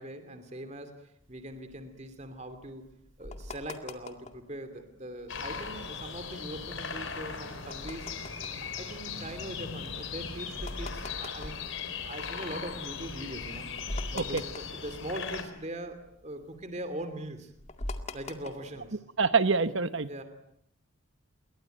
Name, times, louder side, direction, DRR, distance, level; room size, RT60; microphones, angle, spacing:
voice 1, 0.0-2.8 3.2-8.1 8.8-11.6 12.0-13.7 14.1-17.5 18.1-19.0 20.1-20.2, right 1 dB, 35° right, 9 dB, 2.8 m, -41 dB
sound 1, 1.3-4.5 4.9-5.0 5.2-5.5 6.0-12.6 13.1-13.2 13.5-15.6 15.8-18.9, left 2 dB, 30° left, 2.2 m, -42 dB
sound 2, 5.3-15.4, left 5 dB, 65° left, 4.1 m, -38 dB
voice 2, 19.2-20.1, right 4 dB, 65° right, 12 dB, 1.1 m, -26 dB
28.0 x 22.5 x 9.1 m, 0.74 s
head